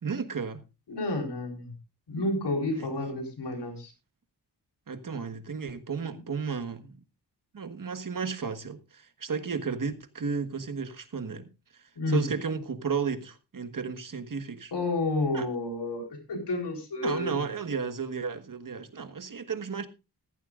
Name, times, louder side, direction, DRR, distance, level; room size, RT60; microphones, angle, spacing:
voice 1, 0.0-0.6 2.7-2.9 4.9-7.0 7.5-11.5 12.1-14.7 15.3-15.5 17.0-19.9, right 5 dB, 50° right, 1.4 m, -33 dB
voice 2, 0.9-1.7 2.1-3.9 12.0-12.2 14.7-17.4, left 2 dB, 90° left, 4.3 m, -30 dB
15.0 x 14.5 x 2.5 m
wide cardioid pair, 75°, 40 cm